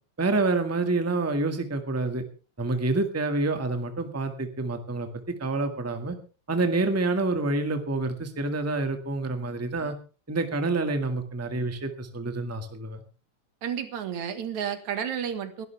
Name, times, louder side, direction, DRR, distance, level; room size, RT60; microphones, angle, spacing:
voice 1, 0.2-2.2 2.6-5.1 5.4-6.2 6.5-9.9 10.3-13.0, right 3 dB, 5° right, 6 dB, 1.3 m, -27 dB
voice 2, 13.6-15.7, right 8 dB, 80° right, 10 dB, 3.0 m, -31 dB
22.0 x 12.5 x 3.4 m, 0.35 s
omnidirectional pair, 3.3 m